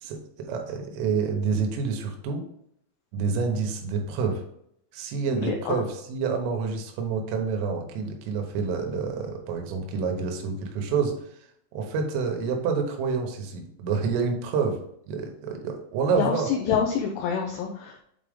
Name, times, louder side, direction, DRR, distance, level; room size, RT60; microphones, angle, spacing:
voice 1, 0.0-2.4 3.1-4.4 4.9-11.1 11.7-14.8 15.1-16.5, right 5 dB, 85° right, 3 dB, 3.6 m, -28 dB
voice 2, 5.3-5.8 16.1-18.0, left 7 dB, 90° left, 0 dB, 2.4 m, -27 dB
8.1 x 3.8 x 3.5 m, 0.72 s
omnidirectional pair, 5.8 m